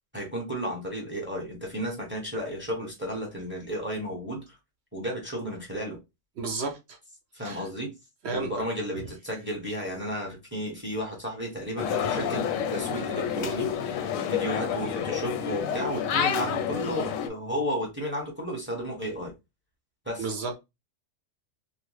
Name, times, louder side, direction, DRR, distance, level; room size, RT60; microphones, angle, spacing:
voice 1, 0.1-4.4 4.9-6.0 7.3-7.9 8.3-14.0 14.3-19.3 20.1-20.3, equal, 10° right, 0.8 m, -33 dB
voice 2, 6.4-7.0 7.4-7.7 8.2-8.6 20.2-20.5, right 4 dB, 60° right, 0.9 m, -32 dB
sound 1, 11.8-17.3, left 8 dB, 90° left, 1.0 m, -29 dB
3.0 x 2.0 x 3.1 m
omnidirectional pair, 1.3 m